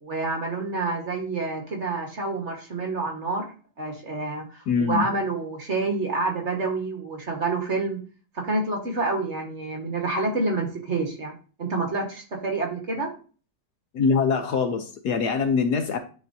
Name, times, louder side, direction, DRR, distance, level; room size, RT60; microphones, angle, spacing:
voice 1, 0.0-3.5 3.8-8.0 8.3-13.1, right 3 dB, 40° right, 1 dB, 1.7 m, -28 dB
voice 2, 4.7-5.1 13.9-16.0, left 5 dB, 65° left, 7 dB, 1.2 m, -23 dB
10.0 x 4.3 x 2.7 m, 0.38 s
omnidirectional pair, 2.0 m